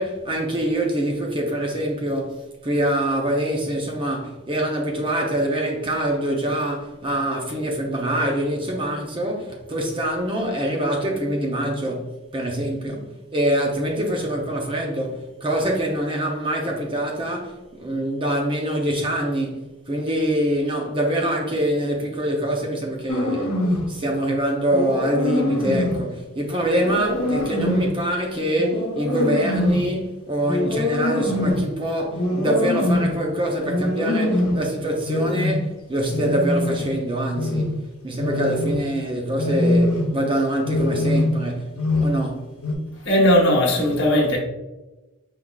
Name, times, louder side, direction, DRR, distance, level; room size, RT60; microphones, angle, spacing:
voice 1, 0.0-23.6 23.9-42.5, right 1 dB, 25° right, 0.6 m, -25 dB
sound 1, 23.1-23.9 24.7-26.0 26.7-28.0 28.5-29.9 30.4-31.7 32.1-33.2 33.6-34.7 35.1-35.6 36.1-37.0 37.3-37.8 38.2-38.9 39.4-40.2 40.6-41.5 41.8-42.3 42.6-42.7, left 1 dB, 85° left, 0.8 m, -23 dB
voice 2, 43.0-44.4, left 1 dB, 55° left, 1.1 m, -17 dB
4.8 x 3.7 x 2.3 m
head